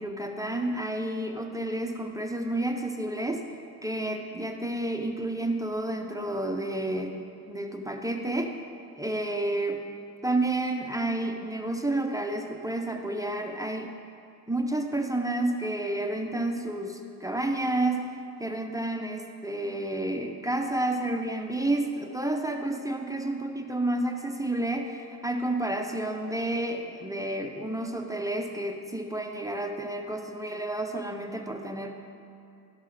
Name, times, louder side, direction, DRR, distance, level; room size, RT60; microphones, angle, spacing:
voice 1, 0.0-3.4 3.8-7.2 7.5-8.5 9.0-9.8 10.2-14.0 14.5-18.1 18.4-31.9, right 1 dB, 10° right, 4 dB, 0.8 m, -30 dB
13.0 x 5.5 x 5.0 m, 2.6 s
supercardioid pair, 60°, 40 cm